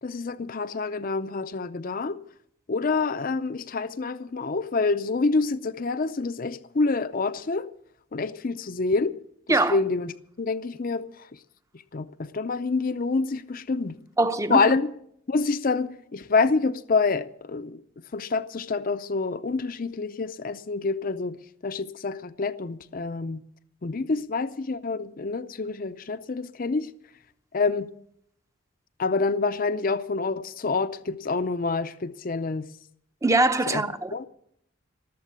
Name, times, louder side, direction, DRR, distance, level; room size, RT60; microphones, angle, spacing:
voice 1, 0.0-2.2 2.7-7.7 8.1-9.2 9.5-10.1 10.4-11.1 11.9-12.1 12.3-14.0 14.5-14.9 15.3-17.8 18.1-21.4 21.6-23.4 23.8-26.9 27.5-27.9 29.0-32.7 33.7-33.8 34.1-34.3, left 4 dB, 45° left, 0.5 m, -27 dB
voice 2, 9.5-9.8 14.2-14.6 33.2-34.3, right 2 dB, 15° right, 0.7 m, -23 dB
19.0 x 7.5 x 8.3 m
head